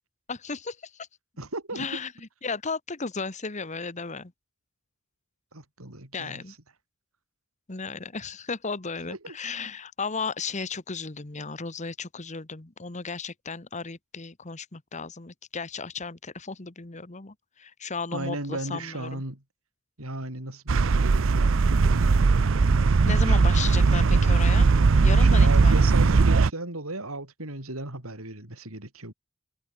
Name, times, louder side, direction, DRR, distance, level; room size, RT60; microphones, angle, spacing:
voice 1, 0.3-1.1 1.7-2.1 2.4-4.3 6.1-6.5 7.7-19.2 23.0-24.7 25.0-25.9, left 4 dB, 35° left, 1.3 m, -35 dB
voice 2, 1.4-1.9 5.5-6.4 9.1-9.4 18.1-19.4 20.0-22.4 23.2-24.3 25.2-29.1, right 2 dB, 90° right, 5.3 m, -36 dB
sound 1, 20.7-26.5, right 4 dB, 65° right, 0.6 m, -19 dB
head